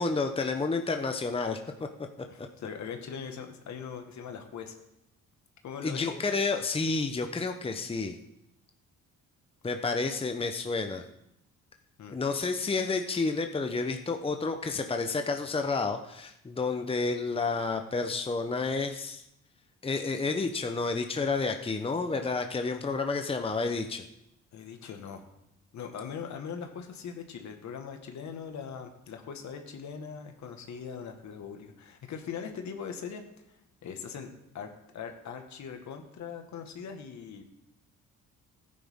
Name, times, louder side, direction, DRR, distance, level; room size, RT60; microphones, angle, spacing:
voice 1, 0.0-1.9 2.4-2.5 5.8-8.2 9.6-11.0 12.1-19.2 19.8-24.0, left 4 dB, 20° left, 6 dB, 0.9 m, -30 dB
voice 2, 2.3-4.8 5.6-6.3 12.0-12.2 24.5-25.2 25.7-33.2 33.8-34.3 34.5-37.4, left 6 dB, 65° left, 5 dB, 1.7 m, -41 dB
15.0 x 9.5 x 3.7 m, 0.81 s
cardioid pair, 90°, 30 cm